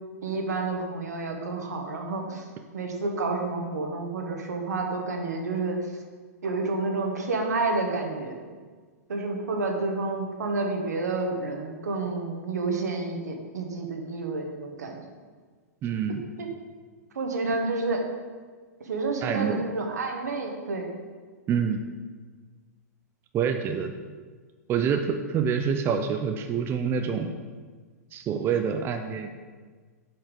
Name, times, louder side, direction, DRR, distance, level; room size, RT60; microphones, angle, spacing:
voice 1, 0.2-2.4 2.7-5.8 6.4-8.3 9.1-15.0 16.4-16.5 17.1-18.0 18.8-21.0 28.3-28.4, right 3 dB, 80° right, 2 dB, 1.4 m, -29 dB
voice 2, 15.8-16.2 19.2-19.6 21.5-21.8 23.3-23.9 24.7-27.3 28.1-29.4, right 7 dB, 25° right, 5 dB, 0.5 m, -26 dB
7.7 x 4.5 x 5.2 m, 1.5 s
hypercardioid pair, 115°, 9 cm